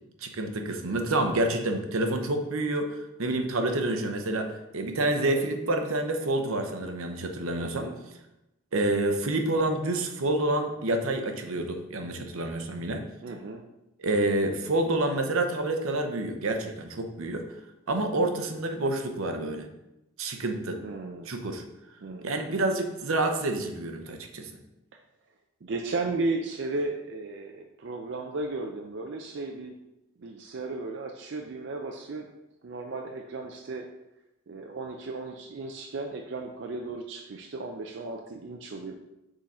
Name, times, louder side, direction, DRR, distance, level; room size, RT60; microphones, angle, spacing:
voice 1, 0.2-7.9 8.7-13.0 14.0-17.5 17.9-19.7 20.2-20.8 21.3-21.6 22.2-24.5, right 2 dB, 80° right, 5 dB, 0.8 m, -28 dB
voice 2, 3.6-4.0 7.6-7.9 13.2-13.6 20.8-21.3 22.0-22.4 25.6-29.7 30.2-32.3 32.6-33.9 34.5-38.9, right 3 dB, 60° right, 3 dB, 0.4 m, -35 dB
6.3 x 3.9 x 4.2 m, 0.92 s
head